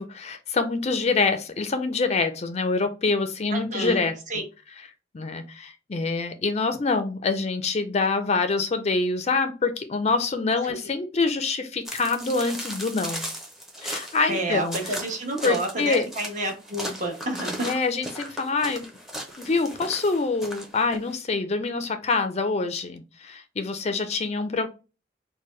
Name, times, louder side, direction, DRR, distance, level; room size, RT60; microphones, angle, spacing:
voice 1, 0.0-4.1 5.1-13.3 13.8-14.9 15.4-16.1 17.6-18.9 19.4-24.7, left 3 dB, 35° left, 0.5 m, -25 dB
voice 2, 3.5-4.4 10.6-10.7 14.3-17.7, right 1 dB, 45° right, 1.2 m, -29 dB
sound 1, 11.8-21.1, equal, ahead, 0.7 m, -37 dB
4.4 x 2.2 x 3.1 m
head